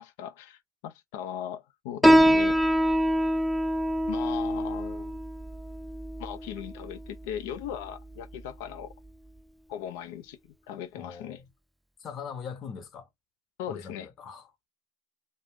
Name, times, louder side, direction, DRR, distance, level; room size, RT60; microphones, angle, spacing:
voice 1, 0.0-2.6 4.1-5.2 6.2-8.9 9.7-11.4 13.6-14.1, left 10 dB, 70° left, 0.5 m, -38 dB
Piano, 2.0-9.1, equal, ahead, 0.3 m, -25 dB
voice 2, 11.0-11.5 12.0-13.1 13.7-14.5, left 6 dB, 40° left, 0.9 m, -41 dB
2.4 x 2.2 x 3.5 m
hypercardioid pair, 90°, 0 cm